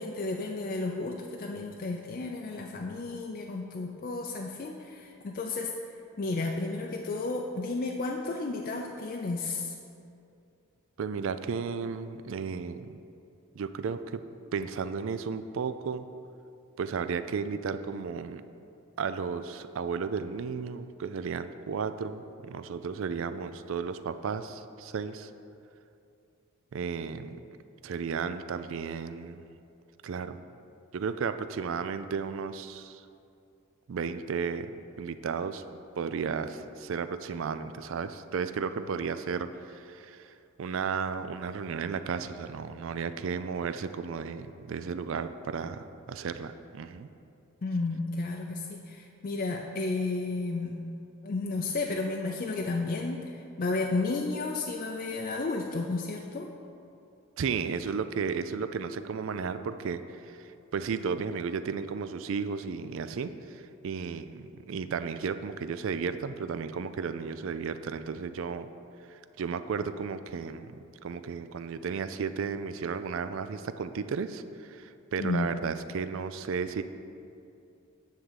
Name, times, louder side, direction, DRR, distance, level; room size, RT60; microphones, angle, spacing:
voice 1, 0.0-5.7 6.2-9.7 47.6-50.8 51.2-56.5 75.2-75.5, left 3 dB, 40° left, 1 dB, 0.4 m, -32 dB
voice 2, 11.0-13.0 13.6-14.2 14.5-16.1 16.8-18.4 19.0-25.3 26.7-27.4 27.8-29.4 30.0-30.4 30.9-33.1 33.9-34.7 35.0-35.6 36.0-47.1 57.4-68.7 69.0-76.8, right 5 dB, 60° right, 11 dB, 0.3 m, -34 dB
9.7 x 3.8 x 7.3 m, 2.6 s
head